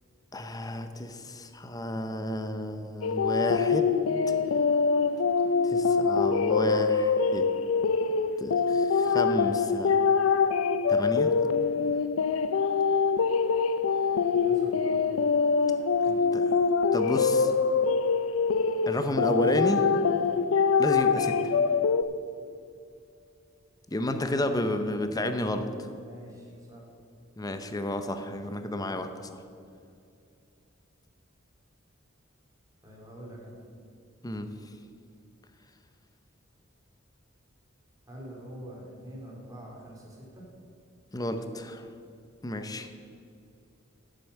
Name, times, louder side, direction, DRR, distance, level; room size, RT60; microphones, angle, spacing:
voice 1, 0.3-3.9 4.3-4.4 5.6-7.5 8.4-10.0 10.9-11.3 16.1-16.5 16.9-17.5 18.9-19.8 20.8-21.5 23.9-25.9 27.4-29.4 34.2-34.5 41.1-41.9 42.4-42.9, left 1 dB, 20° left, 8 dB, 0.6 m, -31 dB
sound 1, 3.0-22.0, left 5 dB, 85° left, 0.4 m, -24 dB
voice 2, 14.3-15.0 26.0-26.9 32.8-33.6 38.1-40.5, equal, 15° right, -3 dB, 2.8 m, -45 dB
10.5 x 8.0 x 6.5 m, 2.5 s
head